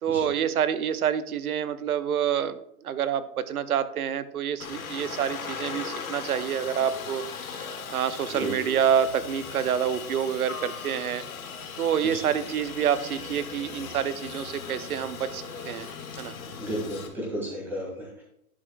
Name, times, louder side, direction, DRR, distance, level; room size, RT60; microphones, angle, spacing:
voice 1, 0.0-7.2 7.9-11.2 11.8-15.9 16.2-16.3, right 8 dB, 70° right, 13 dB, 0.7 m, -27 dB
Aircraft, 4.6-17.1, left 5 dB, 65° left, 1.4 m, -38 dB
voice 2, 8.3-8.7 12.0-12.3 16.6-18.2, equal, 5° right, -5 dB, 2.0 m, -33 dB
11.0 x 6.3 x 2.3 m, 0.76 s
hypercardioid pair, 155°, 45 cm